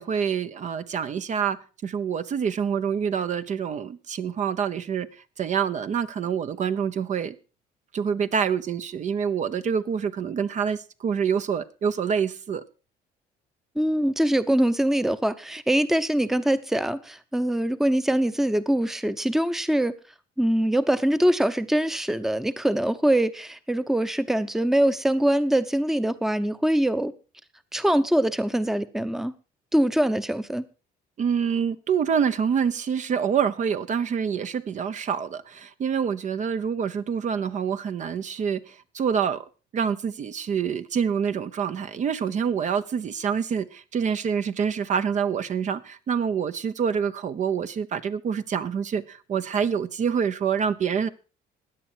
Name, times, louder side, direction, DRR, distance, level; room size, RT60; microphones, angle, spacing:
voice 1, 0.0-5.1 5.4-7.3 7.9-12.6 31.2-39.4 39.7-51.1, right 7 dB, 45° right, 0.9 m, -26 dB
voice 2, 13.8-19.9 20.4-27.1 27.7-29.3 29.7-30.6, right 1 dB, ahead, 0.8 m, -23 dB
16.0 x 10.0 x 4.5 m
cardioid pair, 110°, 17 cm